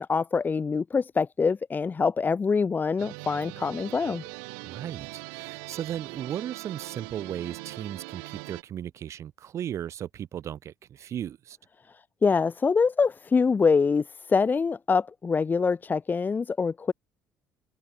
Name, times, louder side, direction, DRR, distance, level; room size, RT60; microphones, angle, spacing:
voice 1, 0.0-4.2 12.2-16.9, left 5 dB, 30° left, 1.8 m, -25 dB
sound 1, 3.0-8.6, right 40 dB or more, 65° right, 5.8 m, -41 dB
voice 2, 4.6-11.6, right 10 dB, 50° right, 6.3 m, -36 dB
figure-of-eight pair, 55°, 7 cm